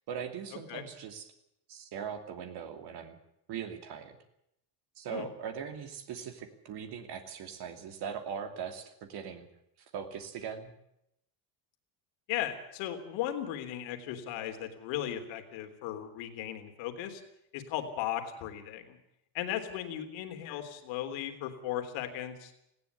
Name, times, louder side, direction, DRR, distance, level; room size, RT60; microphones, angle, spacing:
voice 1, 0.1-1.3 1.7-3.2 3.5-4.2 5.0-9.5 9.8-10.7, right 7 dB, 60° right, 6 dB, 2.8 m, -40 dB
voice 2, 12.3-17.2 17.5-19.0 19.3-22.5, left 11 dB, 80° left, 7 dB, 3.6 m, -36 dB
19.0 x 16.5 x 8.3 m, 0.79 s
cardioid pair, 130°, 45 cm